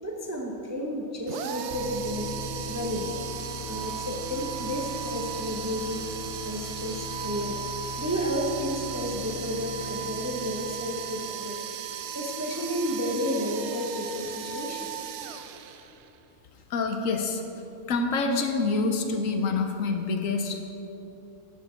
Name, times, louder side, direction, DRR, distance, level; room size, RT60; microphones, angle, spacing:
voice 1, 0.0-2.3 2.7-3.2 3.6-6.1 6.4-7.6 8.0-11.7 12.1-15.1, equal, 15° right, -1 dB, 0.6 m, -32 dB
sound 1, 1.3-16.2, right 8 dB, 65° right, 0.7 m, -36 dB
sound 2, 1.7-11.5, left 4 dB, 50° left, 0.6 m, -41 dB
voice 2, 16.7-17.4 17.9-20.6, left 3 dB, 65° left, 5 dB, 1.0 m, -26 dB
12.0 x 6.7 x 4.4 m, 3.0 s
omnidirectional pair, 1.6 m